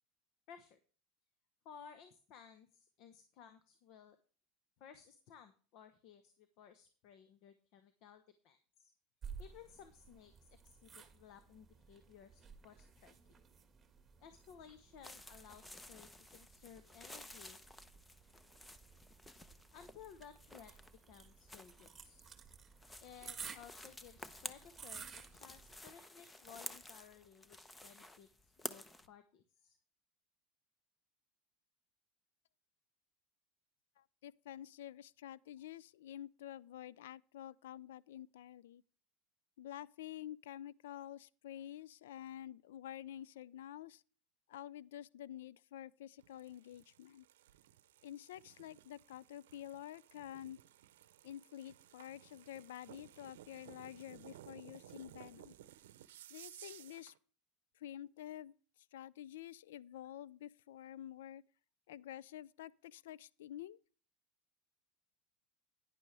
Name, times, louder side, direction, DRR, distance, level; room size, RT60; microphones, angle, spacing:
voice 1, 0.5-0.8 1.6-4.2 4.8-8.9 9.4-13.1 14.2-17.6 19.7-20.7 21.1-22.3 23.0-29.8, left 8 dB, 60° left, 1.1 m, -58 dB
sound 1, 9.2-25.8, right 6 dB, 25° right, 1.6 m, -55 dB
sound 2, 15.0-29.1, left 2 dB, 10° left, 0.9 m, -52 dB
voice 2, 34.0-38.8 39.6-44.0 44.5-47.3 48.0-50.6 51.2-55.5 56.3-57.1 57.8-58.6 58.9-61.4 61.9-63.8, left 11 dB, 85° left, 0.4 m, -49 dB
sound 3, 46.2-57.2, right 12 dB, 85° right, 0.6 m, -58 dB
10.5 x 10.5 x 3.4 m
supercardioid pair, 105°, 0 cm